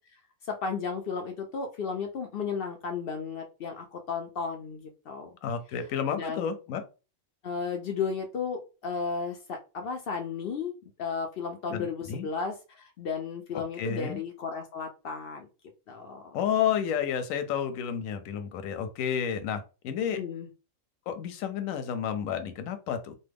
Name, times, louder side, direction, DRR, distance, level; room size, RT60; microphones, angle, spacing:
voice 1, 0.5-5.3 6.1-6.5 7.4-10.7 11.0-15.5 15.9-16.4 20.1-20.5, left 5 dB, 65° left, 4 dB, 0.6 m, -34 dB
voice 2, 5.4-6.8 11.7-12.3 13.8-14.2 16.3-20.2 21.1-23.2, left 8 dB, 85° left, 9 dB, 1.0 m, -31 dB
3.1 x 2.1 x 3.4 m, 0.31 s
omnidirectional pair, 1.4 m